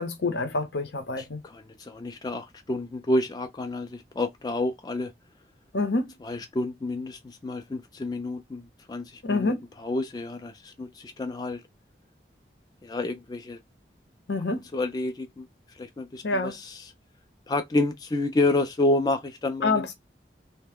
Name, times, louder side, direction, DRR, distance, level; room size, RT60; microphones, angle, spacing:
voice 1, 0.0-1.4 5.7-6.1 9.2-9.6 14.3-14.6 16.2-16.6 19.6-19.9, left 3 dB, 75° left, 0.8 m, -27 dB
voice 2, 1.2-5.1 6.2-9.5 9.8-11.6 12.8-13.6 14.7-15.5 15.8-16.9 17.5-19.9, left 2 dB, 20° left, 0.3 m, -29 dB
2.9 x 2.1 x 3.4 m
head